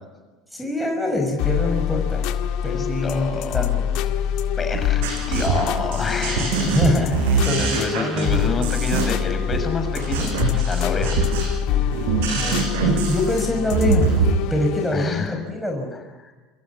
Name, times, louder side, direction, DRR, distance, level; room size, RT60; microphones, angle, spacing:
voice 1, 0.5-2.3 2.6-3.9 6.7-8.7 12.4-14.1 14.5-15.9, left 1 dB, ahead, 2 dB, 5.5 m, -25 dB
sound 1, 1.4-15.2, left 9 dB, 60° left, 1.8 m, -26 dB
voice 2, 2.6-3.6 4.6-6.7 7.6-11.2 14.9-15.4 16.2-16.3, left 4 dB, 25° left, 6 dB, 6.9 m, -28 dB
sound 2, 4.7-14.3, right 5 dB, 70° right, 6.9 m, -23 dB
28.0 x 25.0 x 7.1 m, 1.2 s
hypercardioid pair, 75°, 0 cm